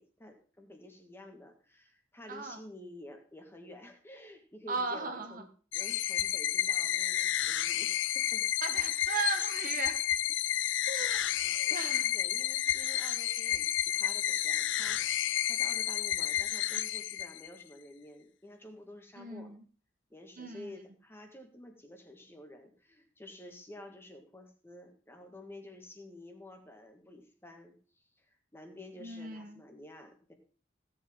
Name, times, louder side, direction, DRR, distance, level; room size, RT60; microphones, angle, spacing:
voice 1, 0.0-5.5 5.7-8.5 11.4-19.5 20.1-30.3, left 1 dB, 10° left, 4 dB, 1.7 m, -51 dB
voice 2, 2.3-2.6 4.7-5.5 8.6-10.0 10.9-12.1 12.9-13.0 19.1-19.6 20.4-20.7 29.0-29.6, right 4 dB, 45° right, 6 dB, 1.2 m, -37 dB
sound 1, 5.7-17.6, left 12 dB, 70° left, 0.5 m, -31 dB
15.5 x 7.8 x 3.8 m, 0.40 s
head